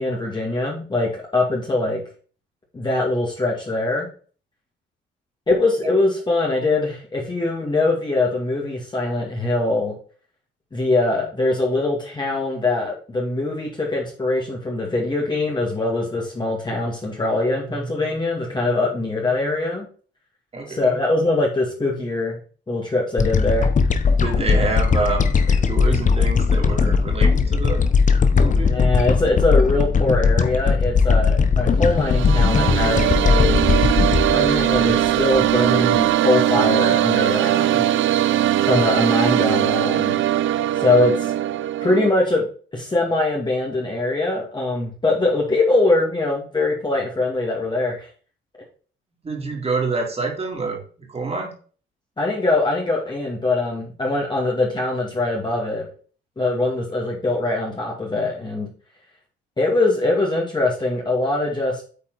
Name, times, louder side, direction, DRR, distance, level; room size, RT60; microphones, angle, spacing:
voice 1, 0.0-2.0 2.7-4.1 5.5-9.9 10.7-19.9 20.7-22.4 22.7-23.7 28.6-33.8 34.2-37.9 38.6-40.2 40.8-41.3 41.8-42.5 42.7-48.1 52.2-55.8 56.4-58.7 59.6-61.8, left 2 dB, 20° left, -3 dB, 2.2 m, -22 dB
voice 2, 20.5-20.9 24.2-27.9 28.3-28.8 38.6-38.8 49.2-50.8 51.1-51.5, right 3 dB, 30° right, 1 dB, 3.1 m, -27 dB
sound 1, 23.2-35.7, left 5 dB, 40° left, 0.9 m, -18 dB
sound 2, 31.8-42.1, right 13 dB, 75° right, 0.5 m, -20 dB
8.6 x 4.2 x 4.0 m, 0.40 s
cardioid pair, 90°, 20 cm